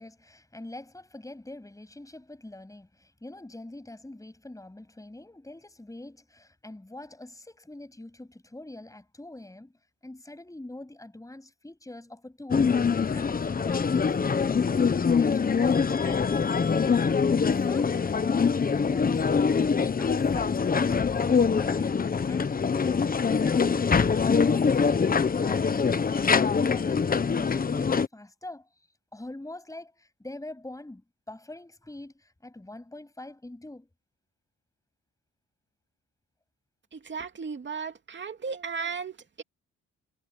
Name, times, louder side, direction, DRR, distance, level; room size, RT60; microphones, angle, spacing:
voice 1, 0.0-9.7 10.0-14.6 14.9-17.0 17.3-19.3 19.7-23.9 24.3-26.2 26.6-28.7 29.1-33.9, left 1 dB, 10° left, 7.8 m, -44 dB
sound 1, 12.5-28.1, left 5 dB, 30° left, 1.1 m, -24 dB
voice 2, 36.9-39.4, right 5 dB, 40° right, 2.7 m, -35 dB
cardioid pair, 90°, 30 cm